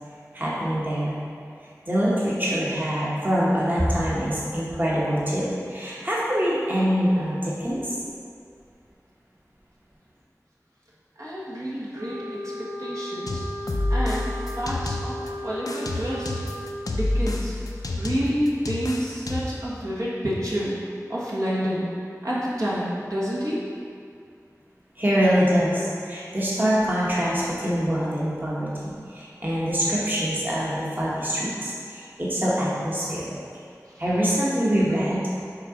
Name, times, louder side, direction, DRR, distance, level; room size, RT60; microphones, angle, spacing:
voice 1, 0.3-1.2 1.9-8.0 25.0-33.3 34.0-35.2, equal, 30° right, -7 dB, 1.2 m, -24 dB
voice 2, 11.2-13.4 13.9-14.3 14.5-15.2 15.4-16.3 16.9-17.6 18.0-20.7 21.1-21.9 22.2-23.7, equal, 60° right, -8 dB, 1.4 m, -28 dB
Wind instrument woodwind instrument, 11.9-16.8, equal, 85° right, 0.7 m, -36 dB
sound 1, 13.3-15.3 15.7-19.7, left 1 dB, 90° left, 0.5 m, -28 dB
6.4 x 3.9 x 5.0 m, 2.3 s
wide cardioid pair, 45°, 6 cm